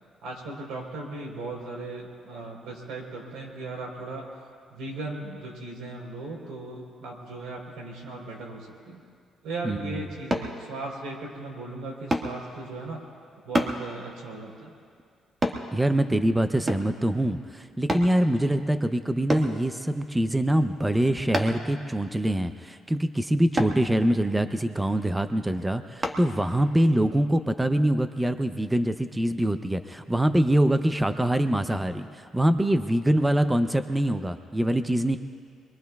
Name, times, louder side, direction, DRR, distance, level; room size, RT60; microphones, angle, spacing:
voice 1, 0.2-4.3 4.7-9.0 9.4-13.0 13.4-14.7, right 2 dB, 85° right, 0 dB, 3.8 m, -37 dB
voice 2, 9.6-10.0 15.7-35.2, right 1 dB, 10° right, 9 dB, 0.6 m, -24 dB
sound 1, 10.3-10.5 12.1-12.3 13.5-13.8 15.4-15.6 16.7-17.0 17.9-18.1 19.3-19.5 21.3-21.7 23.6-23.8 26.0-26.2 26.8-26.9, right 1 dB, 30° right, 1.7 m, -26 dB
27.0 x 22.5 x 2.4 m, 2.2 s
cardioid pair, 90°, 0 cm